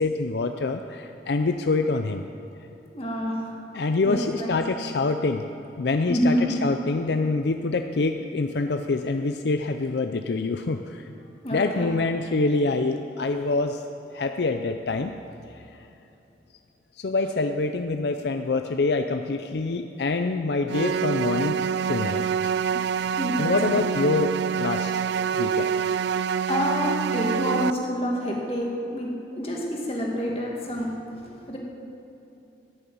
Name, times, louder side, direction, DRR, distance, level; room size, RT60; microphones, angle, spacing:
voice 1, 0.0-2.3 3.7-5.5 5.8-11.1 11.5-13.8 14.1-15.2 17.0-21.6 21.9-22.9 23.4-25.0 25.3-25.7, left 3 dB, 70° left, 6 dB, 0.5 m, -26 dB
voice 2, 2.9-3.6 4.0-4.6 6.1-6.6 11.4-11.9 23.0-23.9 26.5-31.6, equal, 35° left, -2 dB, 2.2 m, -28 dB
sound 1, 20.7-27.7, right 7 dB, 75° right, 0.3 m, -26 dB
14.0 x 7.0 x 9.4 m, 2.9 s
head